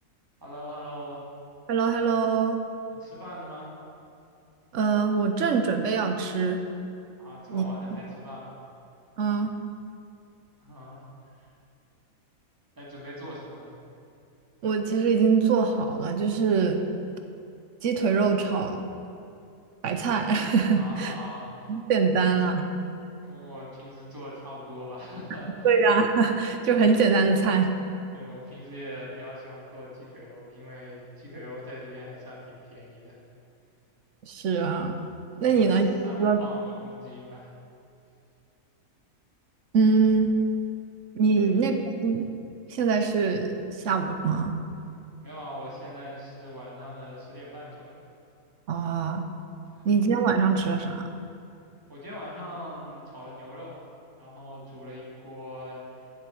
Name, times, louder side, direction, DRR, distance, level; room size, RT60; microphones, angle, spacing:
voice 1, 0.4-1.2 2.9-3.7 7.2-8.6 10.6-11.1 11.4-11.5 12.8-13.7 20.8-21.7 23.2-25.7 28.1-33.2 35.4-35.7 36.0-37.5 41.3-41.6 45.2-48.0 49.7-49.9 51.9-53.8 54.1-56.1, equal, 15° right, -6 dB, 2.3 m, -41 dB
voice 2, 1.7-2.6 4.7-6.6 7.5-7.7 9.2-9.5 14.6-16.8 17.8-18.8 19.8-21.1 21.7-22.7 25.6-27.7 34.2-35.0 35.4-35.9 36.2-36.4 39.7-40.3 41.1-41.7 42.0-42.3 42.7-43.6 43.8-44.6 48.7-49.3 49.8-51.1, right 5 dB, 60° right, 6 dB, 1.0 m, -23 dB
7.5 x 7.2 x 8.3 m, 2.6 s
omnidirectional pair, 1.5 m